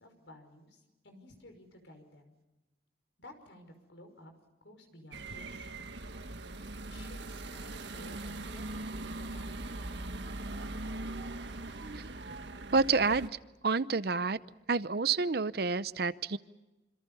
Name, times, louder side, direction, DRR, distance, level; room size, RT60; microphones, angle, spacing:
voice 1, 0.0-2.4 3.2-4.3 4.6-5.7 6.9-10.0, left 1 dB, 75° left, 6 dB, 5.7 m, -54 dB
sound 1, 5.1-13.3, right 2 dB, 75° right, 1.5 m, -41 dB
voice 2, 11.8-12.2 12.7-13.4 13.6-14.4 14.7-16.4, right 4 dB, 55° right, 16 dB, 0.7 m, -29 dB
27.0 x 26.5 x 5.6 m, 1.1 s
head